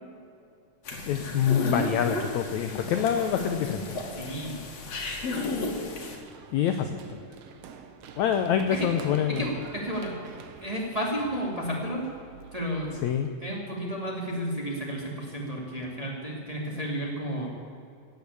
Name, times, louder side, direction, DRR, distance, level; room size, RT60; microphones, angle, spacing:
sound 1, 0.8-6.2, left 3 dB, 55° left, 2.9 m, -33 dB
voice 1, 1.1-3.8 6.5-7.2 8.2-9.5 13.0-13.3, left 9 dB, 75° left, 7 dB, 1.7 m, -26 dB
voice 2, 4.1-4.6 8.7-8.9 9.3-10.1 10.6-12.0 12.5-12.9 13.4-17.5, equal, 15° right, -2 dB, 1.9 m, -32 dB
Run, 5.2-13.0, right 6 dB, 65° right, 1.6 m, -47 dB
16.0 x 8.7 x 8.3 m, 2.5 s
omnidirectional pair, 3.9 m